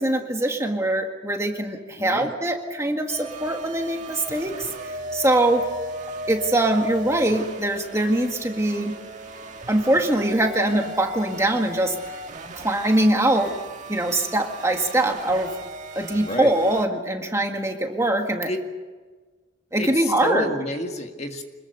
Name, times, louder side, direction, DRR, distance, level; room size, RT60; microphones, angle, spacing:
voice 1, 0.0-5.7 6.3-8.9 9.7-12.2 12.5-13.6 13.9-15.5 15.9-18.5 19.7-20.5, right 1 dB, 15° right, 3 dB, 1.7 m, -23 dB
voice 2, 2.0-2.3 16.1-16.5 18.5-18.6 19.8-21.4, left 1 dB, 30° left, 4 dB, 1.8 m, -29 dB
sound 1, 3.1-16.9, right 1 dB, 35° right, 1.8 m, -37 dB
26.0 x 21.5 x 6.7 m, 1.3 s
head